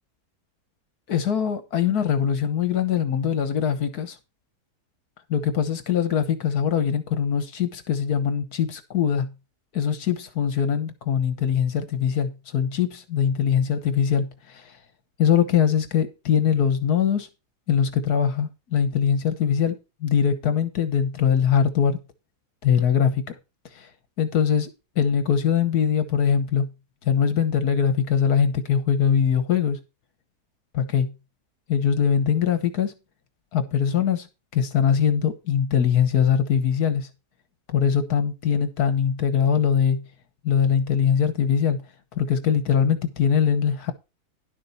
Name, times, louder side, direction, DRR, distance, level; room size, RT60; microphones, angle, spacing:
voice 1, 1.1-4.2 5.3-9.3 9.7-14.7 15.2-17.3 17.7-19.8 20.0-21.9 22.6-23.2 23.7-23.9 24.2-24.7 25.0-26.7 27.0-29.8 30.7-31.1 31.7-32.9 33.5-34.3 34.5-37.1 37.7-40.0 40.4-41.8 42.2-43.9, left 8 dB, 75° left, 10 dB, 1.7 m, -22 dB
11.0 x 7.5 x 4.2 m, 0.27 s
omnidirectional pair, 1.7 m